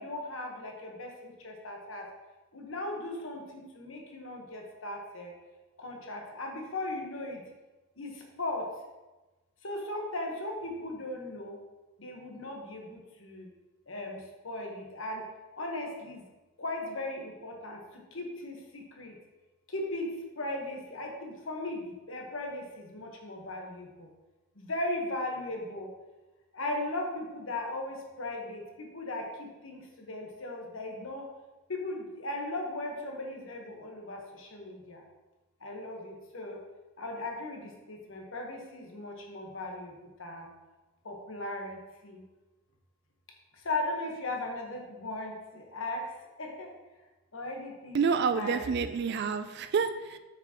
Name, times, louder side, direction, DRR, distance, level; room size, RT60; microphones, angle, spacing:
voice 1, 0.0-2.1 2.5-5.3 5.8-7.4 8.0-8.7 9.6-11.6 12.0-13.5 13.9-15.3 15.6-16.2 16.6-19.1 19.7-24.1 24.5-25.9 26.5-31.3 31.7-35.0 35.6-36.6 37.0-39.9 40.2-40.5 41.0-42.2 43.6-46.1 46.4-46.7 47.3-48.6, left 2 dB, 65° left, 1 dB, 1.2 m, -37 dB
voice 2, 47.9-50.2, right 5 dB, 50° right, 10 dB, 0.3 m, -28 dB
6.8 x 6.0 x 3.0 m, 1.1 s
head